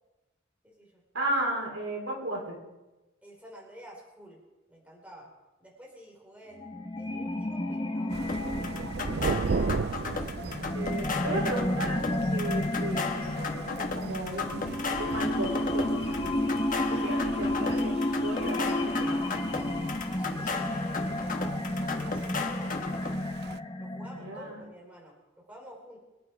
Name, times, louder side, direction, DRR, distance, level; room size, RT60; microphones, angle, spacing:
voice 1, 0.6-1.0 3.2-4.4 4.7-5.3 5.6-6.6 7.0-8.8 20.2-22.8 23.8-26.0, right 1 dB, 5° right, -2 dB, 3.9 m, -49 dB
voice 2, 1.1-2.6 10.7-16.5 16.9-18.0 18.2-19.2 24.1-24.6, right 1 dB, 75° right, 0 dB, 3.9 m, -35 dB
sound 1, 6.6-24.5, left 1 dB, 25° left, 1.0 m, -32 dB
Thunder, 8.1-23.6, right 4 dB, 50° right, 0.4 m, -38 dB
sound 2, 8.3-23.1, left 4 dB, 40° left, 1.4 m, -36 dB
24.0 x 10.0 x 4.9 m, 1.1 s
head